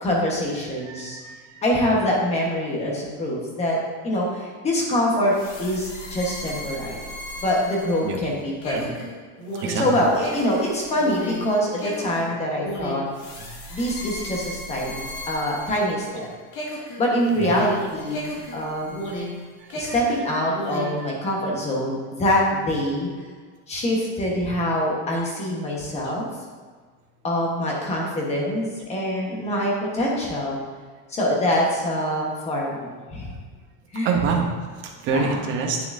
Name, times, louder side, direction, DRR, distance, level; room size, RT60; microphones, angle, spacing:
voice 1, 0.0-1.2 1.6-3.8 4.0-7.0 7.4-9.0 9.8-13.0 13.7-14.9 15.3-16.3 17.0-19.0 19.7-23.1 23.7-26.3 27.2-30.6 31.1-33.3 33.9-34.1 35.1-35.2, left 1 dB, 15° left, -2 dB, 1.0 m, -24 dB
voice 2, 0.8-1.6 1.9-2.0 4.4-4.5 8.0-8.3 8.7-8.8 9.6-10.0 13.4-13.5 16.1-16.2 16.7-16.8 17.4-17.5 19.0-19.2 19.6-20.0 20.2-21.2 26.0-26.1 33.3-33.4 34.0-35.9, right 4 dB, 30° right, 1 dB, 0.7 m, -28 dB
sound 1, 5.3-16.2 16.5-19.4 19.7-21.0, equal, 50° left, 1.9 m, -34 dB
8.9 x 6.7 x 2.5 m, 1.5 s
cardioid pair, 175°, 40 cm